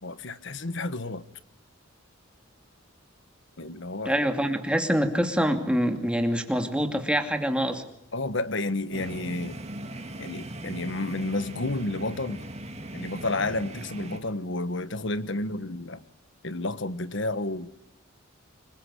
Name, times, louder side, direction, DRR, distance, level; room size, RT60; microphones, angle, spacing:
voice 1, 0.0-1.2 3.6-4.1 8.1-9.6 10.2-12.4 12.9-16.0 16.4-17.7, left 2 dB, 65° left, 14 dB, 1.3 m, -31 dB
voice 2, 4.0-7.8, equal, 5° right, 5 dB, 2.6 m, -25 dB
sound 1, 8.9-14.2, right 1 dB, 35° right, 2.5 m, -39 dB
26.5 x 22.5 x 10.0 m, 0.78 s
head